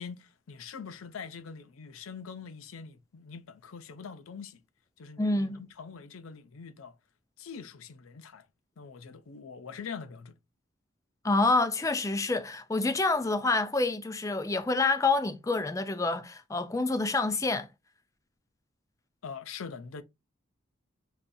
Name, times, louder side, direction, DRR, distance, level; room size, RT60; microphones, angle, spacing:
voice 1, 0.0-4.6 5.0-6.9 7.4-8.4 8.8-10.3 19.2-20.0, left 6 dB, 90° left, 0.5 m, -43 dB
voice 2, 5.2-5.6 11.2-17.7, left 3 dB, 15° left, 0.3 m, -27 dB
5.4 x 2.2 x 2.6 m
head